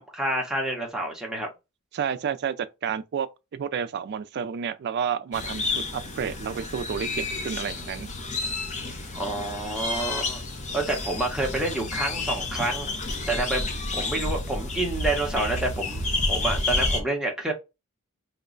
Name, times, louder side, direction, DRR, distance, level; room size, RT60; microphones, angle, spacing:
voice 1, 0.0-1.5 9.1-10.4 10.7-12.9 13.3-13.6 13.9-16.0 16.3-17.5, right 2 dB, 5° right, 0.8 m, -28 dB
voice 2, 1.9-3.3 3.5-8.1, right 7 dB, 50° right, 0.3 m, -30 dB
sound 1, 5.3-17.0, left 2 dB, 35° left, 0.7 m, -30 dB
3.0 x 2.2 x 3.7 m
head